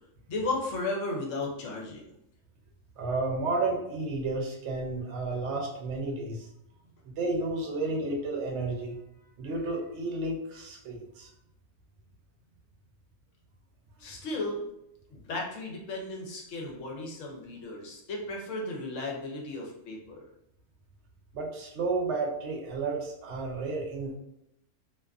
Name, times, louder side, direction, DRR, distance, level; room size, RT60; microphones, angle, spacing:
voice 1, 0.3-2.0 14.0-14.7 15.1-20.2, left 2 dB, 75° left, -1 dB, 1.0 m, -35 dB
voice 2, 3.0-6.5 7.1-9.0 9.4-11.3 21.3-24.2, right 3 dB, 70° right, 0 dB, 0.8 m, -32 dB
2.5 x 2.4 x 2.3 m, 0.80 s
omnidirectional pair, 1.3 m